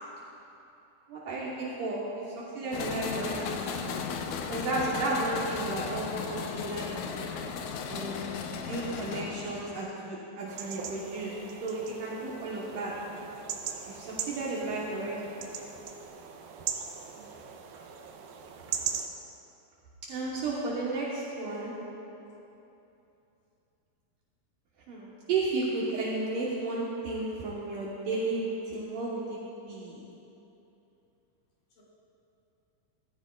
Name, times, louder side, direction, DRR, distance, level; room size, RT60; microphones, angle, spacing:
voice 1, 1.1-2.2 2.6-3.6 4.5-7.3 7.9-8.2 8.5-11.3 11.6-12.9 13.9-15.3 20.1-21.7 24.9-30.0, right 2 dB, 70° right, -6 dB, 2.6 m, -33 dB
sound 1, 2.7-9.8, left 6 dB, 85° left, 1.7 m, -36 dB
sound 2, 10.5-19.1, right 7 dB, 85° right, 2.5 m, -39 dB
voice 2, 17.1-17.5 22.3-22.4 31.7-31.8, equal, 60° left, -6 dB, 4.3 m, -57 dB
16.0 x 14.5 x 2.4 m, 2.9 s
omnidirectional pair, 4.3 m